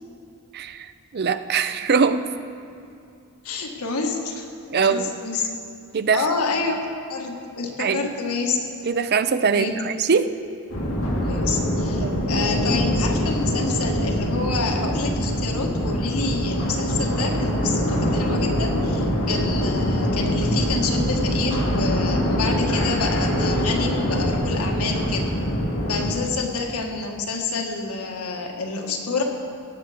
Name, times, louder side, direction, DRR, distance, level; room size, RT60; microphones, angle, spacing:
voice 1, 0.5-2.3 4.7-5.1 5.9-6.3 7.8-8.1 8.8-10.3 12.0-12.3, right 5 dB, 45° right, 11 dB, 0.5 m, -22 dB
voice 2, 3.4-4.5 4.7-5.5 6.1-6.8 7.1-8.6 9.5-9.7 11.2-25.3 25.9-29.2, left 4 dB, 85° left, 2 dB, 1.5 m, -28 dB
sound 1, 10.7-26.1, equal, 70° left, 2.2 m, -24 dB
18.0 x 8.1 x 5.0 m, 2.6 s
head